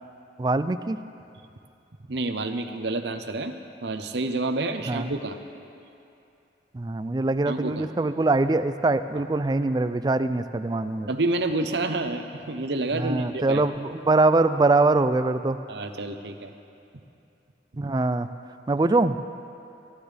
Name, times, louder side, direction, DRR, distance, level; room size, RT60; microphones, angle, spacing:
voice 1, 0.4-1.0 4.9-5.1 6.7-11.1 12.9-15.6 17.8-18.3 18.7-19.2, right 2 dB, 25° right, 11 dB, 0.3 m, -23 dB
voice 2, 2.1-3.5 3.8-5.4 7.5-7.9 9.1-9.2 11.1-13.6 15.7-16.5, right 2 dB, 70° right, 7 dB, 0.8 m, -28 dB
22.5 x 11.5 x 3.4 m, 2.7 s
head